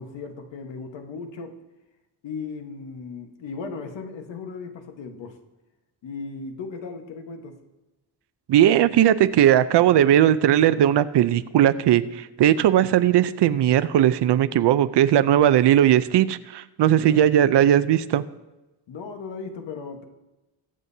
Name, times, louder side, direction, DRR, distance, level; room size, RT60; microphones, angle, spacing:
voice 1, 0.0-1.6 2.2-5.4 6.0-7.6 16.9-17.2 18.9-20.0, left 4 dB, 85° left, 4 dB, 1.4 m, -36 dB
voice 2, 8.5-18.2, right 11 dB, 70° right, 14 dB, 0.6 m, -18 dB
22.0 x 7.5 x 2.8 m, 1.0 s
cardioid pair, 130°, 43 cm